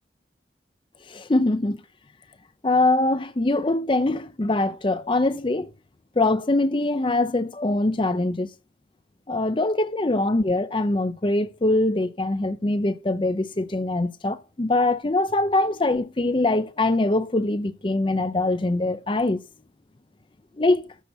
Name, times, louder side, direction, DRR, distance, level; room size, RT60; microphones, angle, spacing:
voice 1, 1.1-1.8 2.6-5.7 6.2-8.5 9.3-19.4 20.6-20.9, left 2 dB, 30° left, 0.5 m, -23 dB
13.0 x 4.3 x 6.8 m
head